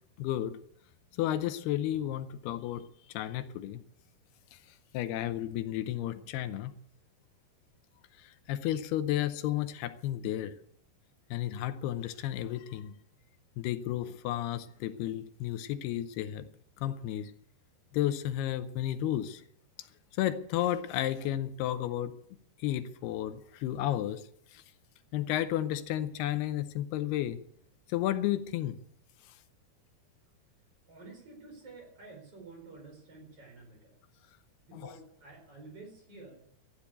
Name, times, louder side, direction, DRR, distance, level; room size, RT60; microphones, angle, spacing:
voice 1, 0.2-0.6 1.1-3.8 4.5-4.6 4.9-6.7 8.2-10.6 11.3-12.9 13.6-16.5 16.8-17.3 17.9-19.4 20.2-22.1 22.6-24.6 25.1-27.4 27.9-28.8 29.3-29.4 34.7-34.9, left 12 dB, 80° left, 11 dB, 2.7 m, -32 dB
voice 2, 30.9-33.9 34.7-36.4, right 3 dB, 35° right, 1 dB, 5.2 m, -50 dB
13.5 x 10.0 x 8.3 m, 0.67 s
omnidirectional pair, 4.6 m